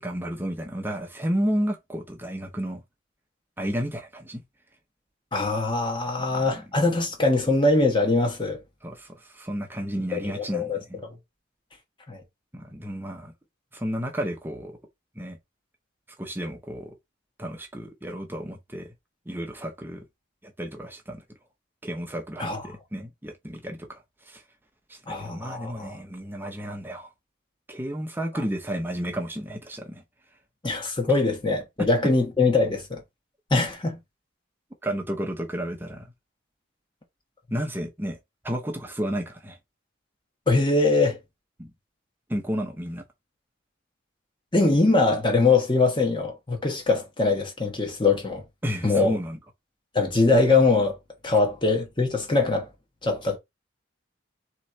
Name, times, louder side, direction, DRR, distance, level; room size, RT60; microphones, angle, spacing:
voice 1, 0.0-2.8 3.6-4.4 6.3-6.6 8.8-11.1 12.5-13.3 13.7-14.8 15.2-15.4 16.2-16.9 17.4-18.9 19.3-20.0 20.4-21.2 21.8-24.4 24.9-27.1 27.7-30.0 34.8-36.1 37.5-38.2 38.4-39.6 41.6-41.7 42.3-43.0 48.6-49.4 51.3-51.4, equal, 10° right, 0.6 m, -32 dB
voice 2, 5.3-8.6 10.1-10.8 12.1-12.2 22.4-22.6 25.1-25.9 30.6-33.0 33.5-34.0 40.5-41.2 44.5-48.4 48.8-49.2 49.9-51.0 51.2-52.7 53.0-53.4, left 3 dB, 25° left, 1.1 m, -22 dB
3.7 x 3.1 x 4.3 m
head